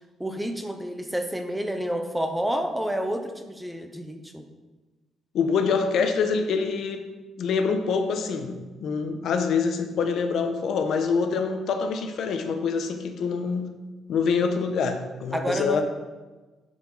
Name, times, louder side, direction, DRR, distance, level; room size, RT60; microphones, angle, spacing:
voice 1, 0.2-4.4 15.3-15.8, equal, 5° right, 6 dB, 0.5 m, -29 dB
voice 2, 5.3-7.0 7.4-13.7 14.1-15.8, left 5 dB, 60° left, 7 dB, 0.8 m, -25 dB
10.5 x 4.8 x 4.0 m, 1.2 s
cardioid pair, 160°, 0 cm